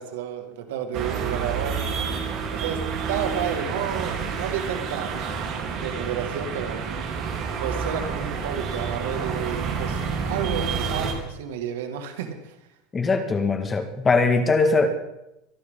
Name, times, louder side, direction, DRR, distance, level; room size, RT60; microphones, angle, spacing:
voice 1, 0.0-2.0 2.5-5.2 5.8-6.8 7.6-12.6, right 8 dB, 85° right, 6 dB, 2.2 m, -31 dB
sound 1, 0.9-11.1, right 5 dB, 50° right, 3.4 m, -29 dB
voice 2, 12.9-14.9, left 3 dB, 20° left, 6 dB, 1.9 m, -21 dB
24.5 x 12.0 x 3.9 m, 0.88 s
supercardioid pair, 130°, 0 cm